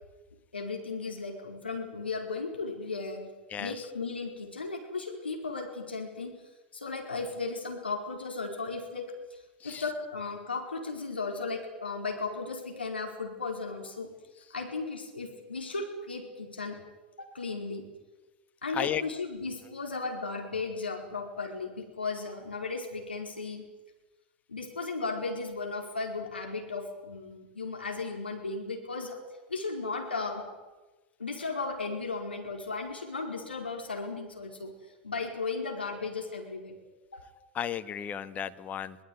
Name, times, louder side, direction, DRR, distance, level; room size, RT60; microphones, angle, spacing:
voice 1, 0.5-6.4 6.7-14.1 14.5-16.8 17.2-17.9 18.6-23.6 24.5-29.2 29.5-30.4 31.2-34.7 35.0-36.8 37.1-37.2, left 4 dB, 85° left, 2 dB, 4.8 m, -36 dB
voice 2, 37.6-39.0, left 9 dB, 30° left, 11 dB, 1.7 m, -33 dB
24.0 x 20.0 x 9.7 m, 1.1 s
figure-of-eight pair, 90°, 5 cm